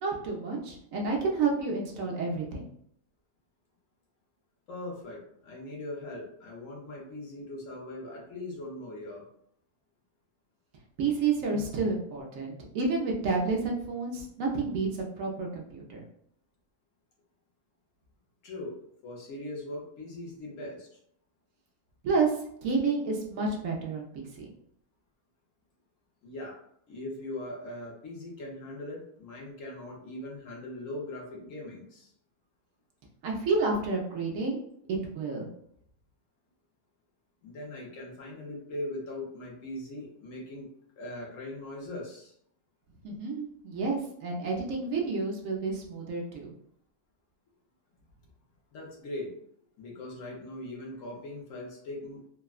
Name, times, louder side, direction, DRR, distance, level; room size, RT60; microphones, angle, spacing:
voice 1, 0.0-2.7 11.0-16.0 22.0-24.5 33.2-34.6 34.9-35.5 43.0-46.5, right 4 dB, 65° right, 0 dB, 0.9 m, -30 dB
voice 2, 4.7-9.2 11.5-11.9 18.4-20.9 26.2-26.6 26.9-32.1 37.4-40.7 41.0-42.3 48.7-49.3 49.8-52.2, left 1 dB, 65° left, -2 dB, 1.0 m, -40 dB
3.5 x 2.1 x 2.3 m, 0.69 s
omnidirectional pair, 1.6 m